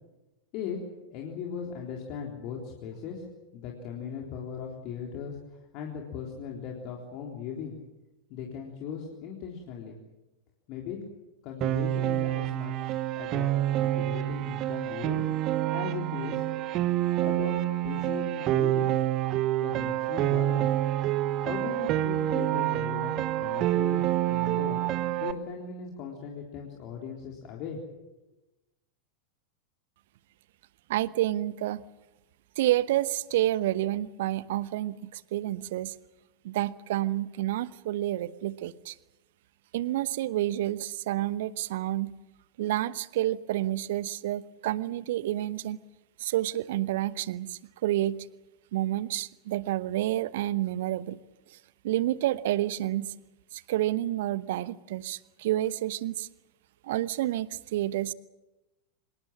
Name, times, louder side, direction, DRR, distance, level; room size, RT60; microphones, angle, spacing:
voice 1, 1.1-3.3 3.5-7.8 8.3-10.0 10.7-11.0 11.4-13.5 13.8-15.3 15.7-16.4 17.2-17.6 17.8-19.0 19.6-20.7 21.4-24.0 24.3-24.8 25.2-28.1, left 7 dB, 40° left, 0 dB, 3.8 m, -38 dB
Piano, 11.6-25.3, right 14 dB, 35° right, 1.2 m, -27 dB
voice 2, 30.9-31.8 32.6-35.9 36.4-39.0 39.7-42.1 42.6-45.8 46.2-48.3 48.7-51.2 51.5-51.6 51.8-53.1 53.5-56.3 56.8-58.1, right 14 dB, 55° right, 18 dB, 0.9 m, -29 dB
26.0 x 22.0 x 7.6 m, 1.0 s
figure-of-eight pair, 90°, 0 cm